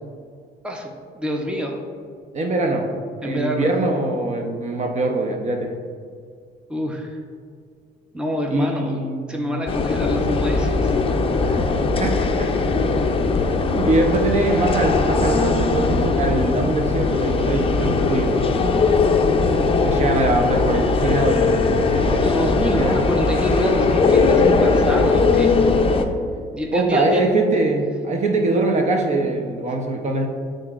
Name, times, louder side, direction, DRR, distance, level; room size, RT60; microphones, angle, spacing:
voice 1, 0.6-1.8 3.2-3.7 6.7-7.2 8.1-9.0 9.3-11.2 13.0-13.1 22.2-25.5 26.5-27.2, equal, 5° right, 1 dB, 0.7 m, -26 dB
voice 2, 2.3-2.9 3.2-5.7 8.5-9.6 11.5-11.6 12.0-12.5 13.4-18.6 19.8-22.2 22.8-23.1 26.7-30.3, right 2 dB, 40° right, 2 dB, 0.7 m, -23 dB
sound 1, 9.7-26.1, left 4 dB, 30° left, 0.5 m, -19 dB
10.5 x 3.8 x 2.5 m, 2.2 s
cardioid pair, 110°, 19 cm